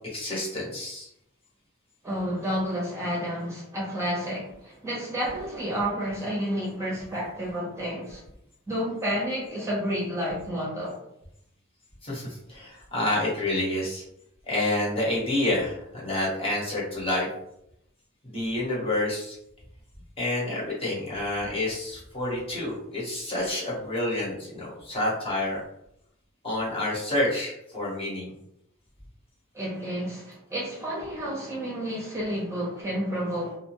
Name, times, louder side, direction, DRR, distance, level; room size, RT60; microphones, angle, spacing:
voice 1, 0.1-1.1 12.0-14.0 14.4-17.3 18.2-19.4 20.2-25.6 26.4-28.3, left 1 dB, 30° left, -5 dB, 1.0 m, -28 dB
voice 2, 2.0-8.2 8.7-11.0 29.5-33.6, equal, 15° right, -5 dB, 0.6 m, -30 dB
2.6 x 2.2 x 2.9 m, 0.78 s
head